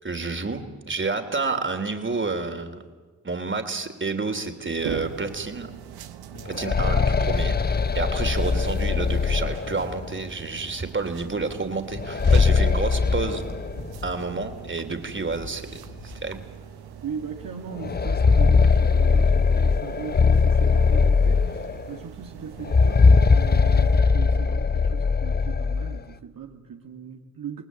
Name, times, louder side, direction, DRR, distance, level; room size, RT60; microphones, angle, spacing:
voice 1, 0.0-2.8 3.2-5.8 6.4-13.5 14.0-16.4, right 3 dB, 30° right, 7 dB, 3.2 m, -29 dB
sound 1, 4.8-24.0, right 9 dB, 80° right, 1.2 m, -42 dB
voice 2, 6.3-6.7 17.0-27.6, right 6 dB, 65° right, 2 dB, 2.0 m, -39 dB
sound 2, 6.4-10.2 11.9-14.1 14.4-14.5 15.4-15.5 16.0-16.1 17.8-21.9 22.6-26.0, left 5 dB, 25° left, 0.8 m, -20 dB
28.5 x 19.0 x 8.3 m, 1.4 s
supercardioid pair, 45°, 37 cm